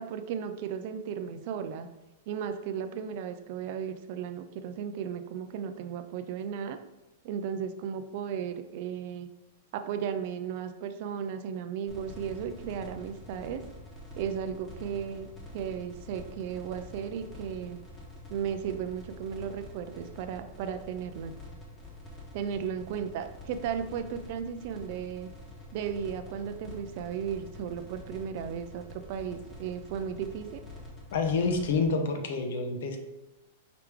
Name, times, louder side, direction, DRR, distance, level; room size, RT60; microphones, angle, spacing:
voice 1, 0.0-1.9 2.3-6.8 7.2-9.3 9.7-13.6 14.2-15.3 15.5-17.8 18.3-21.3 22.3-25.3 25.7-30.6, right 8 dB, 45° right, 9 dB, 0.3 m, -35 dB
sound 1, 11.9-31.9, left 1 dB, 15° left, 1.1 m, -47 dB
voice 2, 31.1-33.0, left 4 dB, 65° left, 4 dB, 0.8 m, -28 dB
4.8 x 3.2 x 3.4 m, 0.96 s
supercardioid pair, 160°, 0 cm